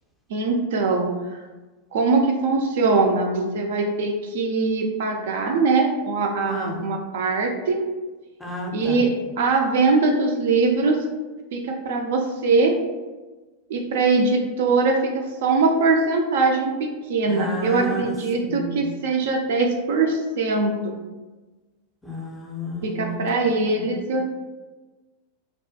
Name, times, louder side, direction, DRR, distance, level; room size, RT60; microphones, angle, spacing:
voice 1, 0.3-1.4 1.9-7.9 8.7-11.0 11.5-12.8 13.7-20.9 22.8-24.2, right 3 dB, 55° right, 2 dB, 0.3 m, -22 dB
voice 2, 6.5-6.8 8.4-9.1 17.3-18.1 18.4-18.9 22.0-24.0, equal, 5° left, -2 dB, 0.5 m, -31 dB
2.3 x 2.2 x 2.6 m, 1.2 s
figure-of-eight pair, 90°, 0 cm